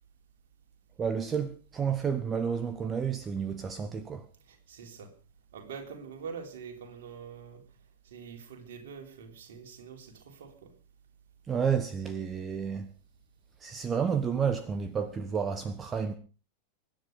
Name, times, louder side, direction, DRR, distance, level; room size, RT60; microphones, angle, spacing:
voice 1, 1.0-4.3 11.5-12.9 13.6-16.1, right 7 dB, 20° right, 1.2 m, -30 dB
voice 2, 4.5-5.1 5.5-7.6 8.0-10.7, right 6 dB, 60° right, 3.9 m, -44 dB
24.0 x 10.0 x 5.2 m
figure-of-eight pair, 90°, 0 cm